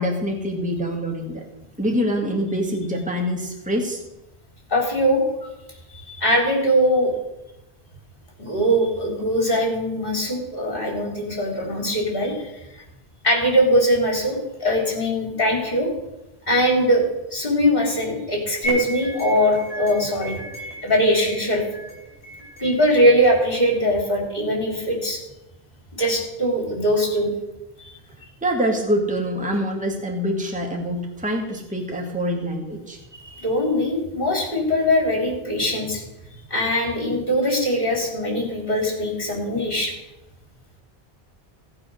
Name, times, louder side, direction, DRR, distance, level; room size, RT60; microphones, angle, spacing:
voice 1, 0.0-1.5 1.8-4.0 28.4-33.0, equal, 5° right, 0 dB, 1.8 m, -25 dB
voice 2, 4.7-5.2 5.9-7.1 8.4-12.8 13.2-15.9 16.5-17.0 17.3-20.3 20.8-21.6 22.6-25.2 26.0-27.3 27.8-27.9 33.2-36.0 36.5-39.9, equal, 55° left, 0 dB, 4.0 m, -21 dB
sound 1, 18.6-23.7, right 1 dB, 35° left, 4.9 m, -34 dB
16.5 x 8.4 x 6.4 m, 0.96 s
omnidirectional pair, 1.1 m